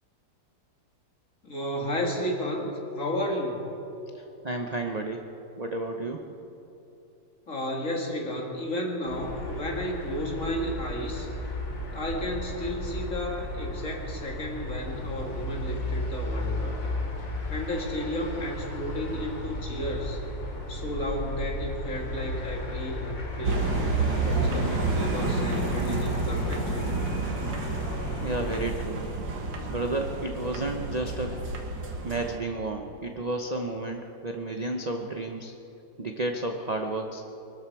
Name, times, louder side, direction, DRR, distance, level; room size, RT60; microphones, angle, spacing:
voice 1, 1.4-2.7 2.9-3.7 7.5-11.3 11.9-16.8 17.5-20.2 20.7-23.7 24.1-27.1, left 1 dB, 45° left, 0 dB, 2.6 m, -32 dB
voice 2, 4.1-5.3 5.6-6.3 28.2-29.0 29.7-31.4 32.0-35.5 36.0-37.2, right 2 dB, 40° right, 3 dB, 0.5 m, -32 dB
sound 1, 9.1-28.7, left 1 dB, 90° left, 2.9 m, -34 dB
sound 2, 23.4-32.4, right 3 dB, 80° right, 2.2 m, -30 dB
23.5 x 13.0 x 4.7 m, 3.0 s
omnidirectional pair, 1.9 m